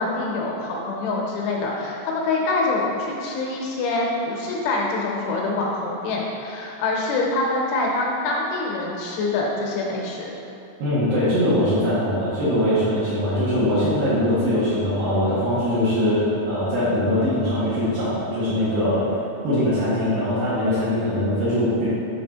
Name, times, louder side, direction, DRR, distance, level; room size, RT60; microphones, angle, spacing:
voice 1, 0.0-10.3, left 2 dB, 80° left, -2 dB, 3.0 m, -25 dB
voice 2, 10.8-19.0 19.4-21.9, left 1 dB, 65° right, -13 dB, 2.2 m, -22 dB
8.9 x 4.2 x 4.3 m, 2.8 s
omnidirectional pair, 5.8 m